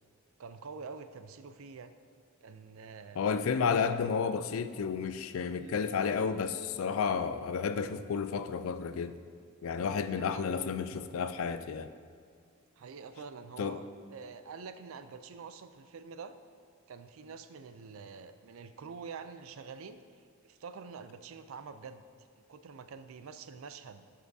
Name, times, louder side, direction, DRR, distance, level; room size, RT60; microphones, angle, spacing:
voice 1, 0.4-1.9 2.4-3.2 5.5-5.8 10.0-10.4 12.8-13.8 14.1-16.3 16.9-20.0 20.4-22.0 22.4-24.0, right 5 dB, 70° right, 11 dB, 0.4 m, -46 dB
voice 2, 3.2-9.2 9.6-11.9 13.6-13.8, left 6 dB, 70° left, 12 dB, 0.4 m, -31 dB
12.5 x 5.5 x 2.7 m, 2.3 s
head